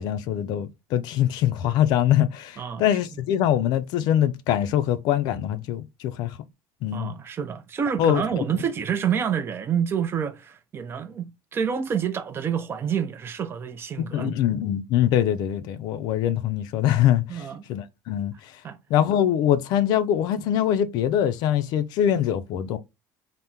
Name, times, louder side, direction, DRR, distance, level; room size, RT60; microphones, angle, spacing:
voice 1, 0.0-6.4 6.8-7.1 8.0-8.2 14.0-17.4 17.7-18.3 18.9-22.8, left 10 dB, 60° left, 0.4 m, -23 dB
voice 2, 6.9-14.3 17.3-17.6 18.6-18.8, right 8 dB, 30° right, 0.4 m, -28 dB
3.5 x 2.0 x 2.7 m
cardioid pair, 135°, 8 cm